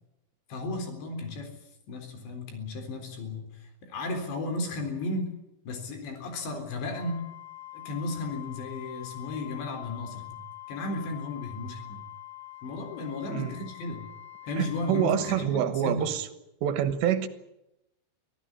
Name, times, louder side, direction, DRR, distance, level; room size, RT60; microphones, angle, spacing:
voice 1, 0.5-1.5 1.9-3.5 3.8-5.3 5.7-7.2 7.7-10.4 10.7-12.0 12.6-14.0 14.5-16.0, left 2 dB, 70° left, 5 dB, 6.1 m, -34 dB
Wind instrument woodwind instrument, 6.9-15.5, left 15 dB, 45° left, 5.5 m, -45 dB
voice 2, 14.6-16.3 16.6-17.3, right 10 dB, 75° right, 11 dB, 3.4 m, -27 dB
25.0 x 15.5 x 9.9 m, 0.89 s
omnidirectional pair, 5.2 m